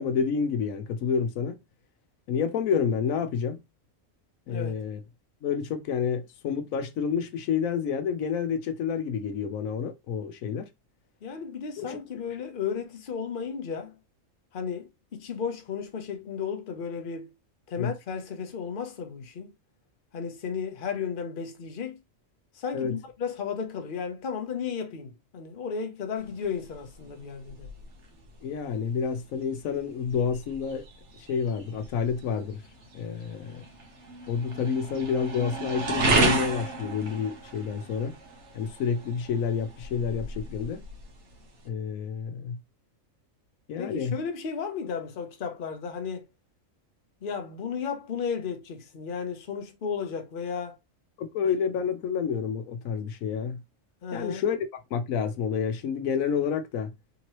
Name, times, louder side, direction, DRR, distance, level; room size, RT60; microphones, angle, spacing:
voice 1, 0.0-1.6 2.3-3.6 4.5-5.0 5.4-10.7 11.8-12.0 17.8-17.9 22.7-22.9 28.4-30.8 31.3-32.6 32.9-33.6 34.3-38.2 38.5-40.8 41.7-42.6 43.7-44.2 51.2-53.6 54.1-54.6 54.9-56.9, left 6 dB, 85° left, 1.1 m, -29 dB
voice 2, 4.5-4.8 11.2-13.9 14.5-17.3 17.7-19.5 20.1-22.0 22.5-27.7 43.8-46.3 47.2-50.8 54.0-54.4, left 6 dB, 45° left, 0.9 m, -34 dB
sound 1, 26.2-41.7, right 3 dB, 60° right, 1.2 m, -33 dB
3.7 x 2.9 x 3.0 m
omnidirectional pair, 1.4 m